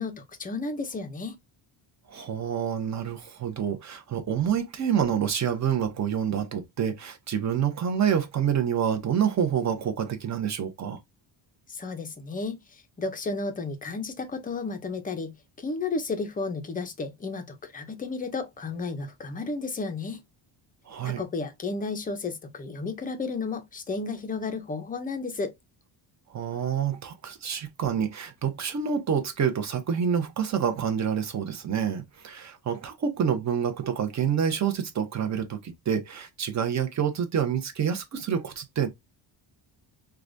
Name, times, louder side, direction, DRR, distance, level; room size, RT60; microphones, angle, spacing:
voice 1, 0.0-1.4 11.7-20.2 21.0-25.5, left 3 dB, 20° left, 0.5 m, -33 dB
voice 2, 2.1-11.0 20.9-21.2 26.3-38.9, right 8 dB, 35° right, 0.7 m, -27 dB
4.7 x 2.2 x 2.5 m
cardioid pair, 180°, 47 cm